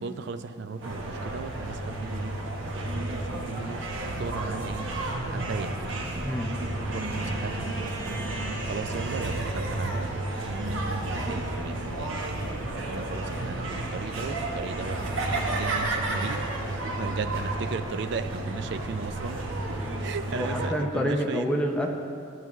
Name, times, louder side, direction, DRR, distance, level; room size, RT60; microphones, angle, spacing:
voice 1, 0.0-2.4 2.7-3.9 4.2-4.9 5.3-5.9 6.9-8.2 8.7-10.1 10.4-12.3 12.9-15.0 15.2-16.4 16.9-19.4 20.0-21.6, right 5 dB, 55° right, 9 dB, 0.4 m, -36 dB
sound 1, 0.8-20.7, right 2 dB, 75° right, 1.0 m, -31 dB
voice 2, 6.1-6.5 20.3-22.0, equal, 5° left, 0 dB, 0.6 m, -28 dB
13.0 x 7.3 x 3.1 m, 2.3 s
head